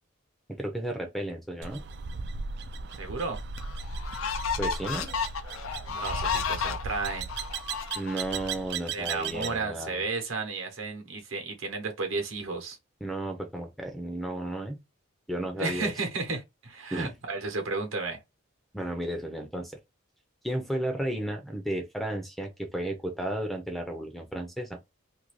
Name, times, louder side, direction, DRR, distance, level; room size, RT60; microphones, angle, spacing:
voice 1, 0.5-1.9 4.6-5.1 7.9-10.0 13.0-14.8 15.3-15.9 16.9-17.1 18.7-19.7 20.4-24.8, right 1 dB, ahead, 0.5 m, -33 dB
sound 1, 1.6-9.6, right 5 dB, 55° right, 0.3 m, -37 dB
sound 2, 2.9-3.0 3.6-8.5, left 6 dB, 80° left, 0.5 m, -33 dB
voice 2, 3.0-3.4 5.9-7.3 8.9-12.8 15.6-18.2, right 3 dB, 75° right, 1.0 m, -33 dB
2.7 x 2.6 x 3.1 m
head